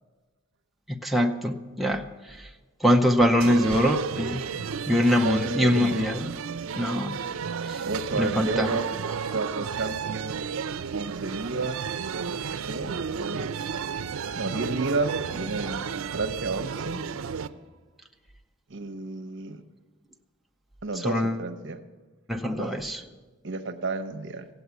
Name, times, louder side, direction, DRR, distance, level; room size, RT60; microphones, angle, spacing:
voice 1, 0.9-2.5 2.8-4.5 4.9-6.3 6.8-7.2 7.6-7.8 8.1-8.8 15.6-15.7 20.9-21.4 22.3-23.0, equal, ahead, 2 dB, 0.6 m, -24 dB
sound 1, 3.4-17.5, right 6 dB, 85° right, 0.5 m, -32 dB
voice 2, 5.2-5.7 7.8-8.9 9.3-10.5 10.9-11.9 12.6-13.5 14.4-17.0 18.7-19.6 20.8-21.8 22.5-22.7 23.4-24.5, right 3 dB, 60° right, 7 dB, 0.9 m, -31 dB
16.5 x 8.2 x 8.3 m, 1.3 s
head